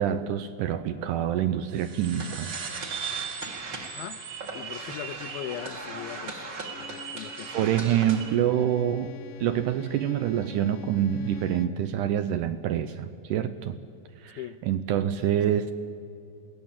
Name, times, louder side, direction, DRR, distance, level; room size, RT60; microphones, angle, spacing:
voice 1, 0.0-2.5 7.5-9.1 9.4-13.8 14.2-15.7, right 10 dB, 80° right, 11 dB, 1.9 m, -26 dB
sound 1, 1.7-6.6, right 7 dB, 55° right, 2.7 m, -40 dB
sound 2, 2.0-8.4, right 4 dB, 35° right, 2.0 m, -38 dB
voice 2, 3.9-4.2 4.5-6.4 6.7-7.7 14.4-14.6, left 13 dB, 90° left, 15 dB, 2.5 m, -39 dB
Bowed string instrument, 5.0-11.9, left 9 dB, 70° left, 2.2 m, -48 dB
22.0 x 16.5 x 7.4 m, 2.6 s
omnidirectional pair, 4.2 m